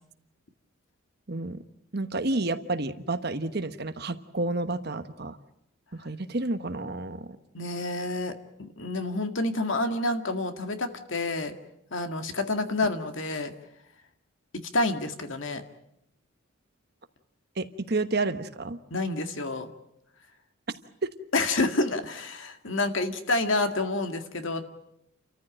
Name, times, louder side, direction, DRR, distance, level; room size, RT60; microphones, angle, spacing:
voice 1, 1.3-1.6 1.9-5.4 5.9-7.3 17.6-18.8 21.0-21.1, right 2 dB, 50° right, 10 dB, 1.2 m, -30 dB
voice 2, 7.5-8.3 8.6-11.5 11.9-13.5 14.5-15.6 18.9-19.7 21.3-24.6, left 2 dB, 65° left, 7 dB, 2.1 m, -28 dB
30.0 x 14.5 x 8.9 m, 0.81 s
head